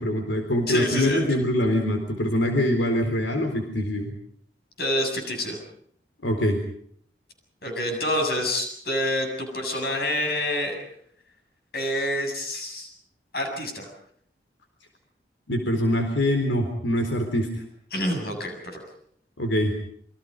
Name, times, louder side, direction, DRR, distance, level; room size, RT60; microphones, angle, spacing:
voice 1, 0.0-4.1 6.2-6.6 15.5-17.5 19.4-19.7, left 1 dB, 90° left, 4 dB, 4.1 m, -24 dB
voice 2, 0.7-1.4 4.8-5.6 7.6-10.8 11.7-12.9 13.3-13.9 17.9-18.8, left 1 dB, 55° left, 3 dB, 7.5 m, -27 dB
28.0 x 24.0 x 5.3 m, 0.64 s
head